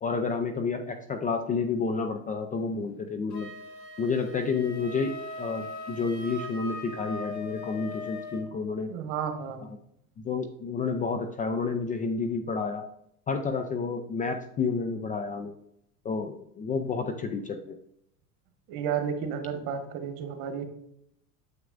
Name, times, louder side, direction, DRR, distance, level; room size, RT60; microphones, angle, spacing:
voice 1, 0.0-3.5 4.0-8.9 10.2-12.8 13.3-15.5 16.0-17.8, left 4 dB, 20° left, 6 dB, 0.4 m, -30 dB
Wind instrument woodwind instrument, 3.3-8.5, left 2 dB, 40° left, 2.2 m, -40 dB
voice 2, 8.8-9.7 18.7-20.6, right 7 dB, 55° right, 6 dB, 1.5 m, -32 dB
7.4 x 5.9 x 2.5 m, 0.73 s
hypercardioid pair, 95°, 44 cm